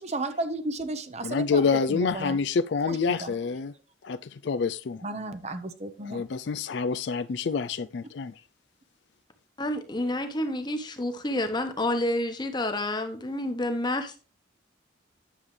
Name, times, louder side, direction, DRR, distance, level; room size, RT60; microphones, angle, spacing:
voice 1, 0.0-2.4 2.8-3.5 5.0-6.2, right 2 dB, 35° right, 0.8 m, -34 dB
voice 2, 1.2-3.7 4.0-5.0 6.1-8.3, left 5 dB, 65° left, 0.4 m, -27 dB
voice 3, 9.6-14.2, left 1 dB, 25° left, 1.1 m, -29 dB
10.0 x 7.2 x 3.2 m
head